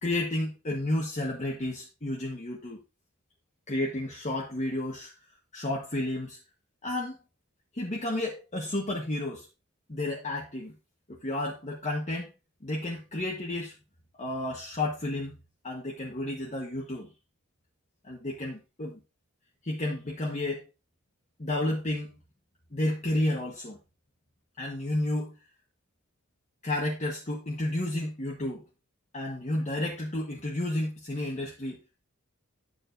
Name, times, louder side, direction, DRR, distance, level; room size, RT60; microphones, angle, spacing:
voice 1, 0.0-2.8 3.7-5.1 5.5-6.4 6.8-7.2 7.7-9.5 9.9-10.7 11.1-12.3 12.6-13.7 14.2-15.4 15.6-17.1 18.0-19.0 19.6-20.7 21.4-22.2 22.7-23.8 24.6-25.3 26.6-28.6 29.1-32.0, left 1 dB, 35° left, -2 dB, 1.3 m, -31 dB
9.8 x 7.0 x 2.7 m, 0.25 s
head